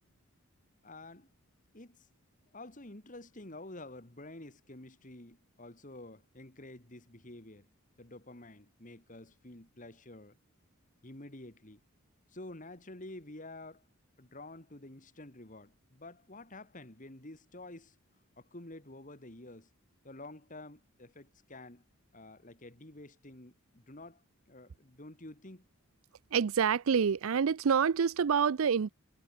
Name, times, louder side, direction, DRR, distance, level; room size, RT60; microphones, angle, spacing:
voice 1, 0.8-1.3 1.7-2.1 2.5-7.7 8.0-10.4 11.0-11.8 12.3-13.8 14.2-18.0 18.4-19.7 20.0-21.8 22.1-25.6, left 2 dB, 35° left, 2.3 m, -49 dB
voice 2, 26.3-28.9, right 6 dB, 65° right, 0.4 m, -27 dB
head